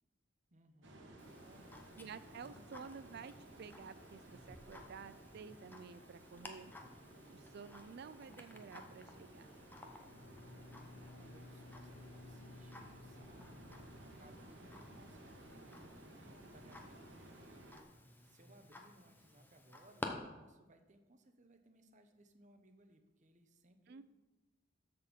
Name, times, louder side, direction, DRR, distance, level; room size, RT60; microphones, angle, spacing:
voice 1, 0.5-1.0 1.4-2.1 2.4-2.8 10.7-17.9 18.2-24.0, right 1 dB, 40° right, 6 dB, 0.9 m, -66 dB
sound 1, 0.8-17.8, right 1 dB, 85° right, 1.5 m, -57 dB
Tick-tock, 1.2-20.1, left 2 dB, 10° left, 0.8 m, -55 dB
voice 2, 2.0-6.7 7.3-9.5 23.9-24.0, right 5 dB, 60° right, 14 dB, 0.4 m, -52 dB
Bowed string instrument, 10.0-14.8, left 3 dB, 65° left, 0.5 m, -57 dB
13.0 x 4.4 x 5.3 m, 1.1 s
head